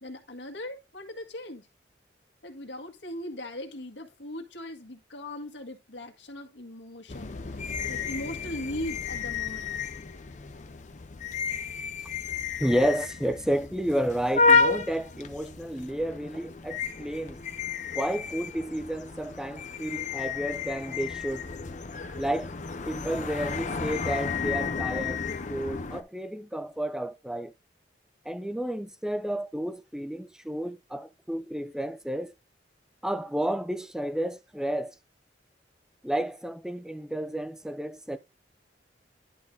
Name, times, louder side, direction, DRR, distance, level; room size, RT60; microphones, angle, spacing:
voice 1, 0.0-1.7 2.4-9.8, left 1 dB, 75° left, 1.7 m, -39 dB
sound 1, 7.1-26.0, left 4 dB, 40° left, 0.7 m, -31 dB
voice 2, 12.6-17.4 17.9-21.5 22.2-22.5 22.8-27.5 28.3-32.3 33.0-34.9 36.0-38.2, equal, 5° right, 0.5 m, -31 dB
11.0 x 3.7 x 3.9 m
head